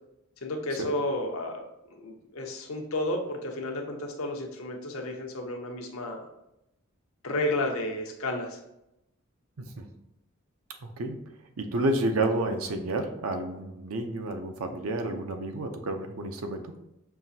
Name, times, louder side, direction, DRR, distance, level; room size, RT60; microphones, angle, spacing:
voice 1, 0.4-1.6 1.9-6.2 7.2-8.6, left 1 dB, 80° left, 2 dB, 0.7 m, -32 dB
voice 2, 10.8-11.2 11.6-16.7, right 2 dB, 80° right, 5 dB, 0.6 m, -30 dB
5.7 x 2.5 x 2.7 m, 0.85 s
head